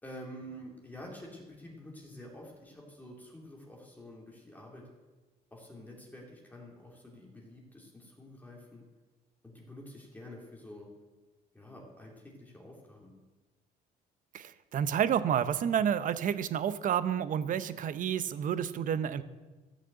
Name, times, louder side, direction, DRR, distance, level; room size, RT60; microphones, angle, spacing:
voice 1, 0.0-4.8 5.5-8.8 9.4-10.9 11.5-13.1, left 1 dB, 10° left, -2 dB, 2.7 m, -48 dB
voice 2, 14.3-19.2, right 9 dB, 50° right, 13 dB, 0.8 m, -30 dB
14.5 x 6.5 x 7.7 m, 1.2 s
cardioid pair, 110°, 17 cm